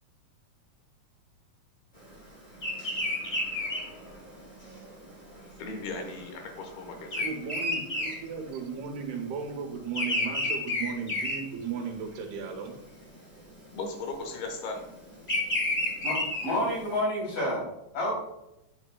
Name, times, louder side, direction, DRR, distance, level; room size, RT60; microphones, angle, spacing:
Bird vocalization bird call bird song, 2.6-9.0 9.3-12.1 12.6-13.0 13.9-16.9, left 2 dB, 20° left, 1.2 m, -31 dB
voice 1, 5.6-7.2 10.1-10.2 13.7-14.9, left 3 dB, 80° left, 3 dB, 3.1 m, -37 dB
voice 2, 7.2-12.7, right 6 dB, 85° right, 3 dB, 2.9 m, -36 dB
voice 3, 16.0-17.6 17.9-18.1, left 1 dB, 60° left, -5 dB, 4.6 m, -29 dB
10.5 x 6.9 x 2.2 m, 0.87 s
omnidirectional pair, 4.4 m